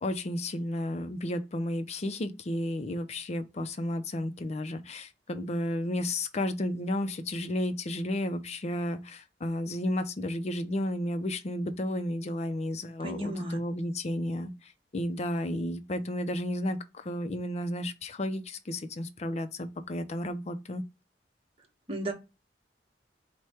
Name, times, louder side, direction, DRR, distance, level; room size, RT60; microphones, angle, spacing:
voice 1, 0.0-20.8, left 1 dB, 40° left, 0.5 m, -32 dB
voice 2, 13.0-13.6 21.9-22.1, right 1 dB, 35° right, 1.1 m, -33 dB
4.8 x 2.2 x 4.2 m
head